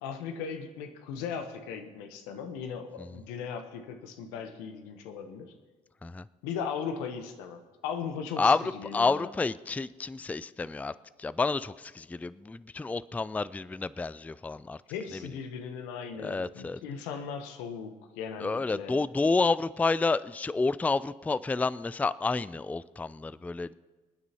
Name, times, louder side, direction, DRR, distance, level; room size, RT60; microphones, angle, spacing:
voice 1, 0.0-5.5 6.4-9.3 14.9-19.0, left 6 dB, 85° left, 7 dB, 1.0 m, -38 dB
voice 2, 8.9-10.9 11.2-14.8 16.2-16.8 18.4-23.7, left 3 dB, 10° left, 18 dB, 0.3 m, -29 dB
26.5 x 9.5 x 2.9 m, 1.3 s
hypercardioid pair, 50°, 17 cm